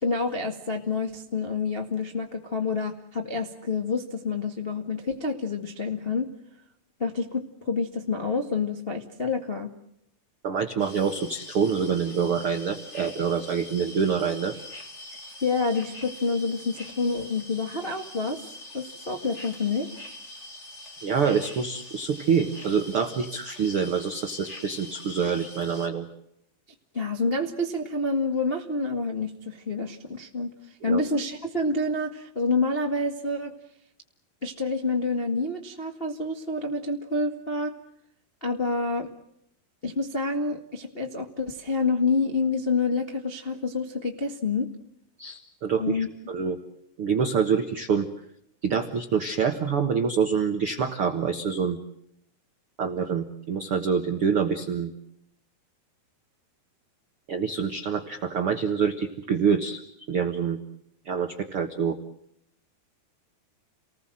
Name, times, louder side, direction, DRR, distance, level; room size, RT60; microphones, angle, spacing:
voice 1, 0.0-6.3 7.0-9.7 15.4-18.4 18.7-19.9 26.9-30.5 30.8-33.5 34.4-37.7 38.4-39.1 39.8-44.7 45.8-46.1, left 3 dB, 80° left, 2 dB, 0.5 m, -28 dB
voice 2, 10.4-14.5 21.0-26.1 30.8-31.0 45.2-46.6 47.0-48.1 48.6-51.8 52.8-54.9 57.3-59.8 60.1-60.6 61.0-62.0, right 6 dB, 65° right, 5 dB, 1.3 m, -26 dB
sound 1, 10.8-25.9, left 1 dB, 25° left, 1.8 m, -44 dB
30.0 x 20.0 x 7.7 m, 0.76 s
omnidirectional pair, 4.8 m